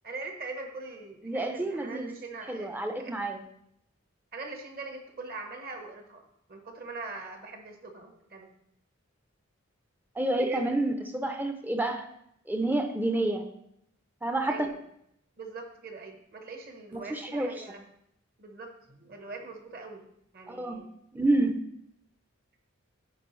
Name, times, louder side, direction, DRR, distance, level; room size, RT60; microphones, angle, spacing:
voice 1, 0.0-3.2 4.3-6.2 6.5-8.5 10.3-10.7 14.5-14.8 15.4-17.8 18.4-20.1 20.3-20.9, right 3 dB, 45° right, 4 dB, 1.0 m, -41 dB
voice 2, 1.2-2.1 2.5-3.4 10.2-12.1 12.5-13.5 14.2-14.7 16.9-17.6 20.5-20.8 21.1-21.6, right 2 dB, 10° right, 6 dB, 0.5 m, -29 dB
10.5 x 4.7 x 3.1 m, 0.74 s
head